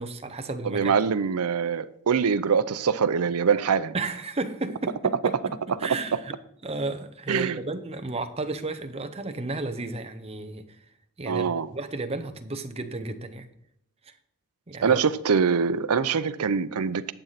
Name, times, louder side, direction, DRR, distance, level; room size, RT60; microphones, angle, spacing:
voice 1, 0.0-1.0 3.9-5.4 5.8-6.4 6.6-10.6 11.2-13.5 14.7-15.0, right 2 dB, 25° right, 0.8 m, -33 dB
voice 2, 0.6-3.9 7.3-7.6 11.3-11.7 14.8-17.1, right 6 dB, 80° right, 0.6 m, -24 dB
11.5 x 7.9 x 4.0 m
head